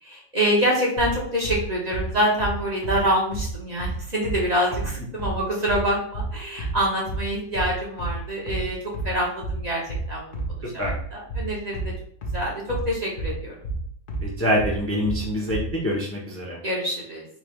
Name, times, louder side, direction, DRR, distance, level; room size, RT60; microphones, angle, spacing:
voice 1, 0.0-9.8 10.1-11.9 12.3-13.6 16.6-17.3, equal, 40° right, -3 dB, 0.8 m, -26 dB
sound 1, 1.0-15.8, right 2 dB, 50° left, 0.8 m, -30 dB
voice 2, 14.2-16.6, equal, 15° left, -4 dB, 0.6 m, -25 dB
4.1 x 3.2 x 2.3 m, 0.64 s
omnidirectional pair, 1.3 m